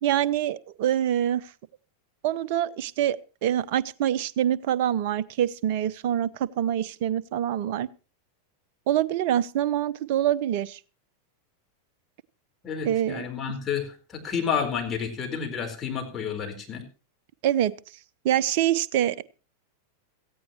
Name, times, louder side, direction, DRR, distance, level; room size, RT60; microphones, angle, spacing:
voice 1, 0.0-1.5 2.2-3.2 3.4-7.9 8.9-10.8 12.8-13.3 17.4-17.7 18.2-19.2, right 11 dB, 50° right, 18 dB, 0.7 m, -25 dB
voice 2, 12.6-16.8, left 7 dB, 20° left, 3 dB, 4.3 m, -30 dB
17.5 x 15.0 x 3.0 m, 0.33 s
figure-of-eight pair, 90°, 0 cm